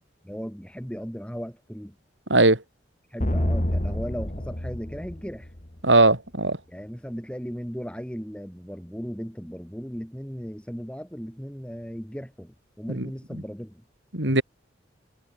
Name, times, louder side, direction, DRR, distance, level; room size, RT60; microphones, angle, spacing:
voice 1, 0.2-1.9 3.1-5.5 6.7-13.8 14.2-14.4, equal, 5° left, 7.9 m, -36 dB
voice 2, 2.3-2.6 5.8-6.6 12.9-13.4 14.1-14.4, right 2 dB, 80° right, 6.9 m, -20 dB
sound 1, 3.2-5.9, left 1 dB, 40° left, 2.4 m, -28 dB
head